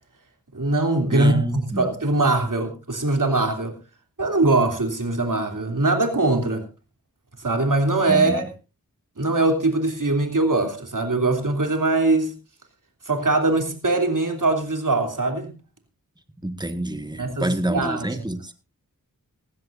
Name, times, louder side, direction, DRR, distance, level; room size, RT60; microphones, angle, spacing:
voice 1, 0.5-3.7 4.2-6.6 7.4-8.5 9.2-12.3 13.1-15.5 17.2-18.1, right 2 dB, 60° right, 5 dB, 3.2 m, -22 dB
voice 2, 1.1-1.8 8.1-8.5 16.4-18.5, right 1 dB, 10° right, 8 dB, 1.7 m, -27 dB
18.5 x 16.0 x 2.6 m, 0.30 s
wide cardioid pair, 45°, 35 cm